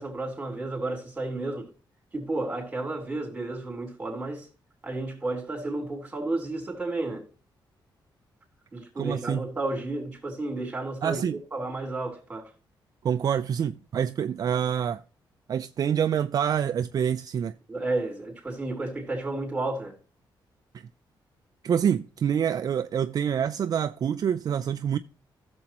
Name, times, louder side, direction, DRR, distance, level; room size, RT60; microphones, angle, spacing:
voice 1, 0.0-1.7 2.1-4.5 4.8-7.3 8.7-12.5 17.7-19.9, right 2 dB, 15° right, 3.7 m, -32 dB
voice 2, 9.0-9.4 11.0-11.4 13.0-15.0 15.5-17.5 21.6-25.0, right 8 dB, 50° right, 0.4 m, -26 dB
16.0 x 6.9 x 2.9 m
wide cardioid pair, 150°, 8 cm